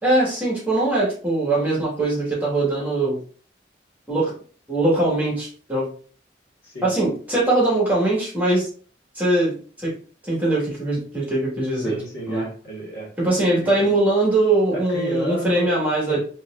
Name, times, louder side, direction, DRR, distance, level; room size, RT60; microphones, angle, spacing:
voice 1, 0.0-3.2 4.1-4.3 4.7-5.9 6.8-8.7 9.1-9.9 10.2-12.0 12.3-12.4 13.2-16.2, right 2 dB, 10° right, -6 dB, 1.7 m, -21 dB
voice 2, 11.8-13.1 13.6-13.8 14.7-15.7 16.1-16.2, right 1 dB, 60° left, -5 dB, 1.7 m, -31 dB
4.4 x 3.0 x 2.5 m, 0.42 s
head